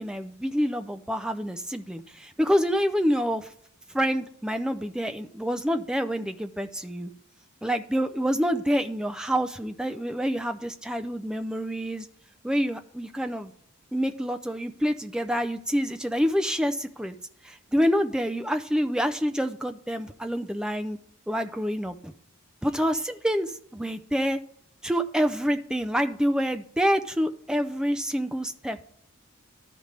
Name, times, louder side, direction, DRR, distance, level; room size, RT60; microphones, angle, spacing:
voice 1, 0.0-3.5 3.9-7.1 7.6-12.1 12.4-13.5 13.9-17.2 17.4-21.0 21.3-22.1 22.6-24.4 24.8-28.8, equal, 5° right, 7 dB, 0.3 m, -27 dB
12.5 x 5.1 x 3.2 m, 0.65 s
head